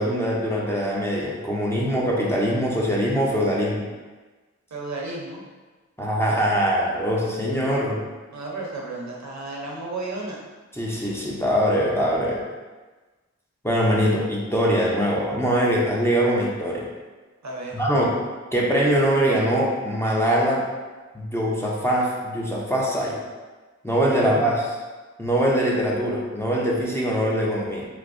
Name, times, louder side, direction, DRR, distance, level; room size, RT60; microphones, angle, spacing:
voice 1, 0.0-3.9 6.0-8.0 10.7-12.4 13.6-16.9 17.7-18.1 18.5-20.6 21.1-23.2 23.8-24.8 25.2-27.9, equal, 10° left, -4 dB, 0.5 m, -22 dB
voice 2, 4.7-5.4 8.3-10.4 17.4-17.8 24.2-24.5, right 2 dB, 70° right, -2 dB, 0.6 m, -33 dB
3.1 x 2.0 x 2.4 m, 1.3 s
wide cardioid pair, 60°, 29 cm